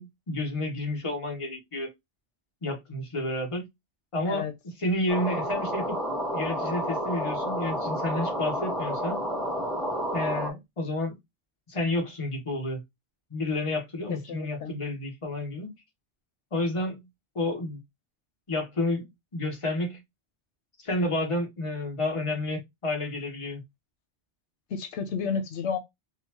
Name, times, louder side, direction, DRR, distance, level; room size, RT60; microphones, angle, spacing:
voice 1, 0.0-1.9 2.6-3.7 4.1-4.5 4.8-6.0 6.3-9.2 10.1-11.2 11.7-12.8 13.3-15.8 16.5-17.0 17.3-17.8 18.5-20.0 20.8-23.6, left 1 dB, 30° left, 1.1 m, -30 dB
sound 1, 5.1-10.5, equal, ahead, 1.1 m, -30 dB
voice 2, 14.1-14.8 24.7-25.8, left 6 dB, 85° left, 1.0 m, -31 dB
3.9 x 2.4 x 2.9 m
omnidirectional pair, 1.2 m